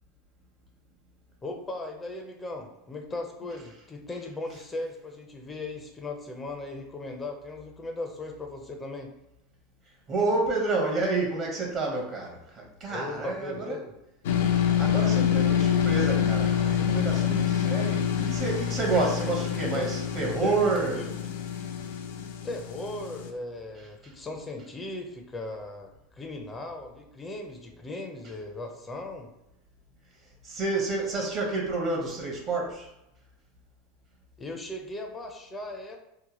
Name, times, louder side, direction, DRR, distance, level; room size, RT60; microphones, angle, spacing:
voice 1, 1.4-9.1 12.9-13.9 18.9-19.4 19.8-19.9 20.4-21.0 22.4-29.3 34.4-36.0, left 2 dB, 20° left, 3 dB, 0.4 m, -37 dB
voice 2, 10.1-13.8 14.8-21.1 24.0-24.1 30.4-32.9, right 3 dB, 40° right, -1 dB, 0.7 m, -29 dB
sound 1, 14.2-23.3, left 9 dB, 80° left, 0.4 m, -26 dB
2.7 x 2.1 x 2.9 m, 0.85 s
supercardioid pair, 110°, 0 cm